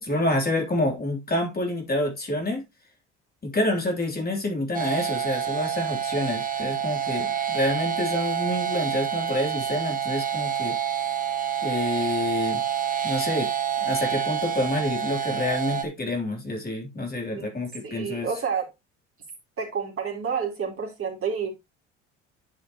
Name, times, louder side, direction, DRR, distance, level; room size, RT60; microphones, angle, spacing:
voice 1, 0.0-2.6 3.4-10.8 11.6-12.6 13.0-13.5 13.8-18.3, left 1 dB, 25° left, 3.4 m, -28 dB
sound 1, 4.7-15.8, right 9 dB, 25° right, 1.9 m, -28 dB
voice 2, 17.8-18.7 19.6-21.5, right 6 dB, 40° right, 4.0 m, -29 dB
11.0 x 5.8 x 3.0 m
hypercardioid pair, 65°, 35 cm